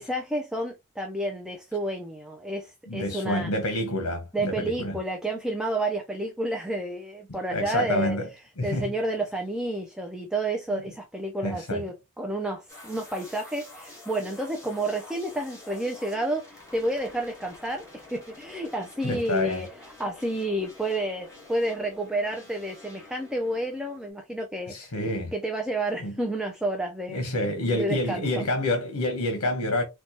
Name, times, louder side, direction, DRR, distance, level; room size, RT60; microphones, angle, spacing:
voice 1, 0.0-3.5 4.3-8.2 8.6-16.4 16.7-17.9 18.1-19.7 20.0-24.9 25.3-27.2 27.7-28.3, right 1 dB, 5° right, 0.4 m, -30 dB
voice 2, 2.9-4.9 7.3-8.3 8.6-8.9 10.7-10.8 11.4-11.8 19.0-19.6 24.7-25.3 26.0-26.1 27.1-29.8, left 1 dB, 80° left, 0.9 m, -28 dB
sound 1, 12.7-24.1, left 2 dB, 15° left, 1.4 m, -48 dB
4.3 x 2.2 x 2.7 m
head